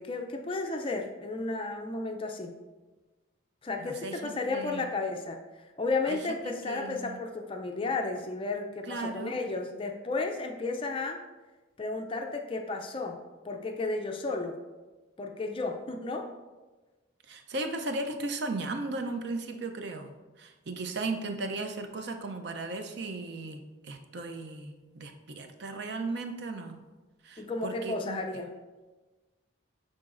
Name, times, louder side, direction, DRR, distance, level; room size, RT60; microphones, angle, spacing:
voice 1, 0.0-2.5 3.6-11.2 11.8-13.2 13.4-14.6 15.2-16.3 27.4-28.5, left 3 dB, 25° left, 3 dB, 0.4 m, -33 dB
voice 2, 3.8-4.9 6.1-7.2 8.9-9.3 17.3-20.1 20.4-26.8 27.2-28.2, right 2 dB, 55° right, 5 dB, 0.5 m, -36 dB
9.8 x 3.8 x 2.5 m, 1.2 s
head